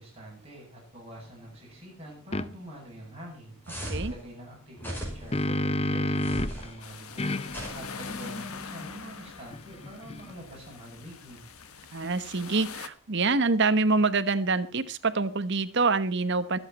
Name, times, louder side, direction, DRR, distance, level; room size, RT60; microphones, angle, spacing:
voice 1, 0.0-3.6 3.9-7.4 7.7-11.5, right 1 dB, 30° right, -3 dB, 7.5 m, -46 dB
sound 1, 2.3-2.5 4.9-6.7 7.2-10.5, left 1 dB, 30° left, 0.6 m, -31 dB
sound 2, 3.7-4.2 4.8-5.4 6.2-6.7 7.5-8.3, equal, 10° left, 5.8 m, -37 dB
sound 3, 6.8-12.9, left 6 dB, 85° left, 1.3 m, -44 dB
voice 2, 11.9-16.6, right 3 dB, 55° right, 12 dB, 1.1 m, -26 dB
24.5 x 8.2 x 4.2 m, 0.34 s
head